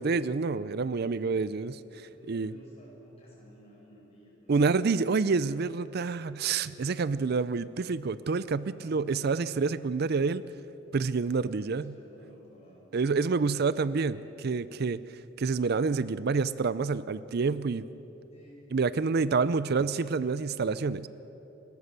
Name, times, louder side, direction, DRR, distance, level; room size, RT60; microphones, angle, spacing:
voice 1, 0.0-1.8 2.3-2.5 4.5-10.4 10.9-12.0 12.9-15.0 15.4-17.9 18.7-21.1, right 4 dB, 50° right, 16 dB, 0.5 m, -28 dB
voice 2, 1.2-1.8 2.1-5.0 8.7-9.5 11.7-13.5 18.3-19.3, equal, 30° left, -3 dB, 6.4 m, -55 dB
29.0 x 13.0 x 6.8 m, 3.0 s
head